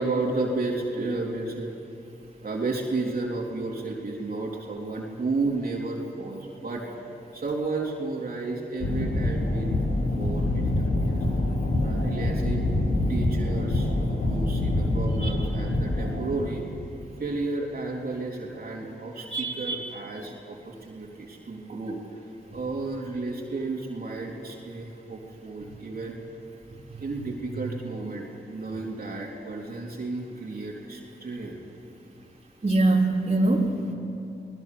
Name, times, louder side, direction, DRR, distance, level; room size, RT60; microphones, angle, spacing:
voice 1, 0.0-1.7 2.4-9.7 10.1-11.2 11.8-12.6 13.1-16.6 17.2-22.0 22.5-26.2 27.0-31.6, right 3 dB, 55° right, -1 dB, 3.5 m, -32 dB
sound 1, 8.8-16.5, left 1 dB, 90° left, 3.2 m, -25 dB
voice 2, 19.3-19.8 26.9-27.3 32.6-33.9, right 2 dB, 35° right, -2 dB, 3.7 m, -24 dB
24.0 x 19.5 x 6.9 m, 2.7 s
cardioid pair, 55°, 18 cm